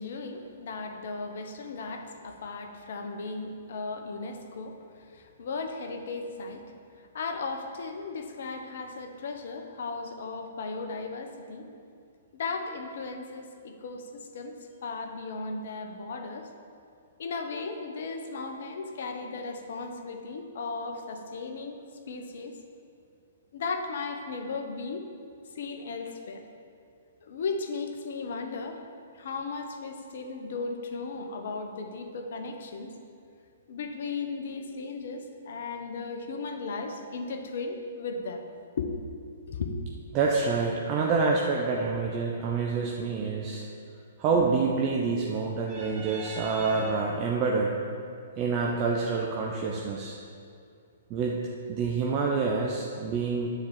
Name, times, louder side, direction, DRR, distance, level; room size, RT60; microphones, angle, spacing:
voice 1, 0.0-6.6 7.0-11.7 12.3-14.5 14.8-16.5 17.2-21.8 22.1-22.5 23.5-25.1 25.5-26.4 27.2-28.8 29.1-32.9 33.7-38.5 38.8-39.0 39.5-39.8, left 4 dB, 60° left, 5 dB, 1.0 m, -36 dB
voice 2, 40.1-43.6 44.2-47.7 48.4-50.2 51.1-51.4 51.7-53.5, right 4 dB, 35° right, -2 dB, 0.8 m, -27 dB
9.6 x 4.5 x 7.4 m, 2.4 s
figure-of-eight pair, 120°, 0 cm